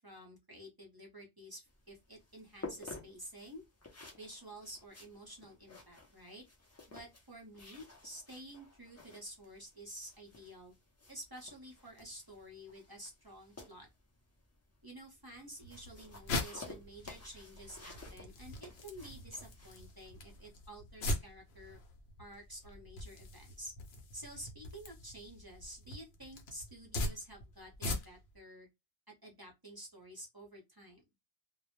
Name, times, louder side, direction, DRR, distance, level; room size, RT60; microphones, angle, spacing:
voice 1, 0.0-3.6 4.1-6.4 6.9-10.7 11.1-13.9 14.8-21.8 22.2-23.7 24.1-28.7 29.2-31.0, right 1 dB, 30° right, 0.5 m, -50 dB
sound 1, 1.7-20.5, left 3 dB, 25° left, 0.3 m, -54 dB
sound 2, 15.6-28.4, left 1 dB, 80° left, 0.8 m, -42 dB
2.1 x 2.0 x 2.9 m
omnidirectional pair, 1.1 m